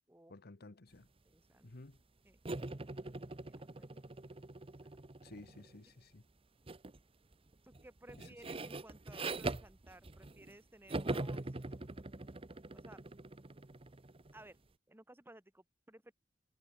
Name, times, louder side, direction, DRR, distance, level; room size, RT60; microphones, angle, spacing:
voice 1, 0.3-1.1 1.6-2.0 5.2-6.2 8.2-8.5, left 2 dB, 55° left, 1.2 m, -54 dB
voice 2, 1.2-1.7 2.2-2.4 3.5-4.4 4.8-5.0 7.6-11.6 12.7-13.0 14.3-14.6 14.9-16.1, right 1 dB, 10° right, 1.8 m, -58 dB
sound 1, 2.5-5.8 6.7-7.0 7.3-10.6 10.9-14.4, right 2 dB, 30° right, 0.9 m, -43 dB
head